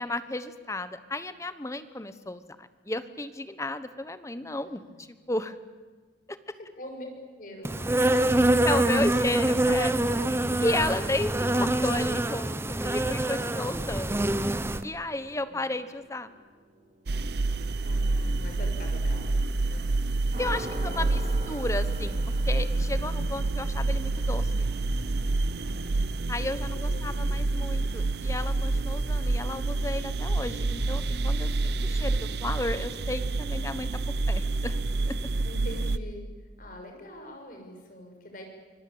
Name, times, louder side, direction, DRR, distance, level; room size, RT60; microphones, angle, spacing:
voice 1, 0.0-5.5 8.6-9.9 10.6-14.3 14.8-16.3 20.4-21.2 21.5-22.2 22.5-24.7 26.3-33.9 34.3-34.7 35.1-35.2, left 2 dB, 15° left, 12 dB, 1.1 m, -33 dB
voice 2, 6.5-7.1 7.3-8.7 9.0-9.1 15.5-15.6 17.8-19.3 19.7-19.9 20.8-21.2 25.6-26.2 26.4-27.4 35.4-36.2 36.6-38.5, left 1 dB, 50° left, 3 dB, 6.3 m, -44 dB
Insect, 7.6-14.8, right 1 dB, 15° right, 0.9 m, -25 dB
sound 1, 13.5-19.9 20.3-28.0, right 1 dB, 45° right, 4.5 m, -47 dB
sound 2, 17.1-36.0, right 2 dB, 65° right, 0.7 m, -28 dB
25.5 x 21.5 x 8.7 m, 1.4 s
head